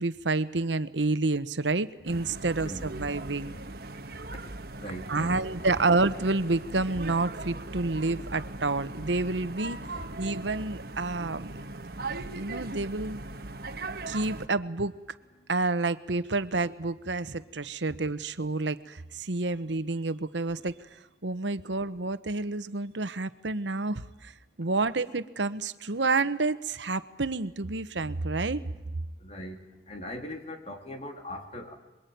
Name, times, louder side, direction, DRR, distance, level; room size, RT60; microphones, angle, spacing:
voice 1, 0.0-3.5 5.1-9.8 10.2-11.6 12.3-13.2 14.1-15.0 15.5-20.7 21.2-24.3 24.6-28.6, right 3 dB, 90° right, 13 dB, 1.1 m, -29 dB
sound 1, 2.0-14.5, right 2 dB, 55° right, 1.3 m, -39 dB
voice 2, 2.6-2.9 4.7-5.4 9.9-10.0 17.9-18.0 29.2-29.6 29.9-31.7, left 1 dB, 35° left, 4 dB, 3.1 m, -40 dB
26.5 x 22.0 x 9.4 m, 1.0 s
head